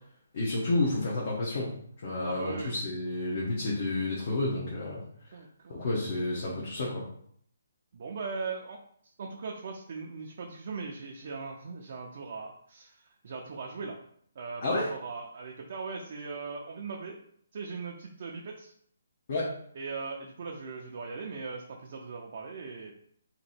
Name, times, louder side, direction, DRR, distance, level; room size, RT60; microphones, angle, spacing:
voice 1, 0.3-1.7 2.0-5.0 5.7-7.0 14.6-14.9 19.3-19.5, left 2 dB, 45° left, -5 dB, 0.9 m, -30 dB
voice 2, 2.2-2.7 5.3-5.9 7.9-8.8 9.2-14.0 14.4-17.2 17.5-18.7 19.7-23.1, right 4 dB, 50° right, 0 dB, 0.5 m, -39 dB
3.0 x 2.7 x 4.2 m, 0.64 s
hypercardioid pair, 165°, 0 cm